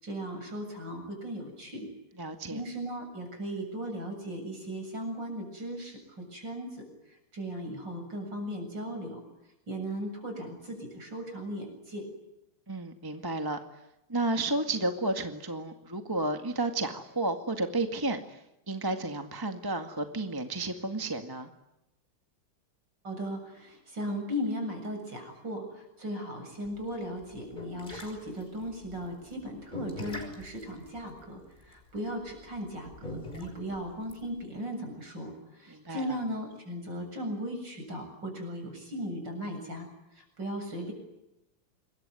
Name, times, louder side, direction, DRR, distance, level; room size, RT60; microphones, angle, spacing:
voice 1, 0.0-1.9 2.5-9.2 9.7-12.1 23.0-39.9 40.1-40.9, equal, 55° right, 5 dB, 8.2 m, -37 dB
voice 2, 2.2-2.6 12.7-13.6 14.1-18.4 18.7-21.5 35.7-36.2, right 2 dB, 10° right, 6 dB, 1.7 m, -32 dB
sound 1, 26.7-34.4, left 1 dB, 20° left, 6.0 m, -42 dB
27.0 x 22.5 x 9.8 m, 0.88 s
omnidirectional pair, 2.4 m